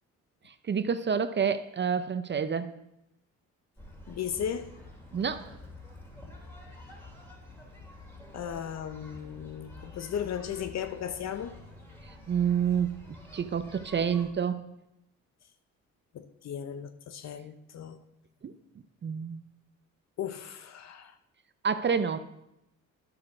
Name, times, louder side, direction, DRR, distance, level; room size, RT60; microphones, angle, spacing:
voice 1, 0.5-2.7 5.1-5.4 12.0-13.0 13.3-14.6 18.4-18.5 19.0-19.4 21.6-22.2, right 7 dB, 35° right, 0.6 m, -28 dB
sound 1, 3.8-14.3, left 2 dB, 10° left, 2.8 m, -48 dB
voice 2, 4.1-4.7 8.3-11.5 16.1-18.0 20.2-21.1, left 8 dB, 60° left, 0.8 m, -36 dB
10.5 x 6.6 x 6.0 m
cardioid pair, 90°, 30 cm